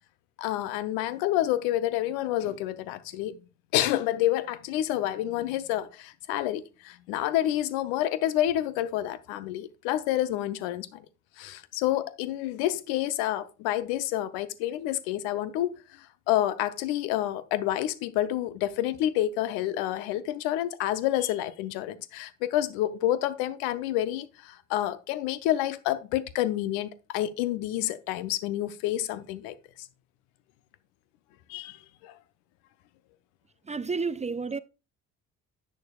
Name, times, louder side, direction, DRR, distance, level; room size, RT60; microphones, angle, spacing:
voice 1, 0.4-3.4 3.7-11.1 11.4-29.9 31.5-32.1, left 13 dB, 75° left, 0.6 m, -29 dB
voice 2, 33.6-34.6, right 4 dB, 20° right, 0.4 m, -30 dB
10.5 x 7.4 x 2.3 m
hypercardioid pair, 45°, 37 cm